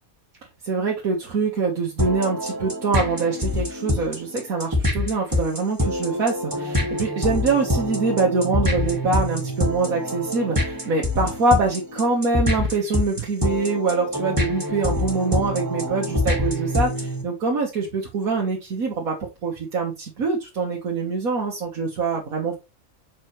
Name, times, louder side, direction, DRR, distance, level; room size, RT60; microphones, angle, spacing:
voice 1, 0.6-22.5, right 4 dB, 80° right, -2 dB, 1.8 m, -24 dB
sound 1, 2.0-17.2, left 1 dB, 15° right, 1.8 m, -25 dB
6.3 x 5.2 x 3.1 m, 0.24 s
omnidirectional pair, 1.5 m